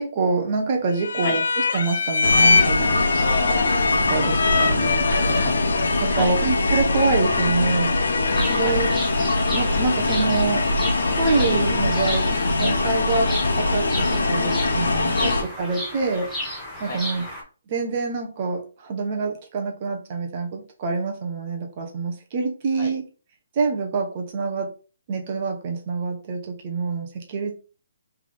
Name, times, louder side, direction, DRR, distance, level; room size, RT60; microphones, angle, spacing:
voice 1, 0.0-3.2 3.6-3.8 4.1-5.0 6.0-8.2 8.5-8.9 9.5-10.7 11.1-16.3 16.8-17.2 17.7-23.1 23.5-24.7 25.1-27.6, right 4 dB, 30° right, 2 dB, 0.7 m, -26 dB
sound 1, 1.0-9.1, left 4 dB, 65° left, 0.3 m, -24 dB
sound 2, 2.2-15.4, left 2 dB, 85° left, 1.2 m, -22 dB
voice 2, 3.2-3.7 4.2-4.7 5.1-6.4 8.2-8.8 11.3-11.5 15.1-15.3 16.8-17.0 22.8-22.9, left 1 dB, 30° left, 1 dB, 1.2 m, -32 dB
Bird vocalization bird call bird song, 8.3-17.4, left 1 dB, 5° left, 0.9 m, -33 dB
3.4 x 3.3 x 3.8 m, 0.36 s
hypercardioid pair, 175°, 0 cm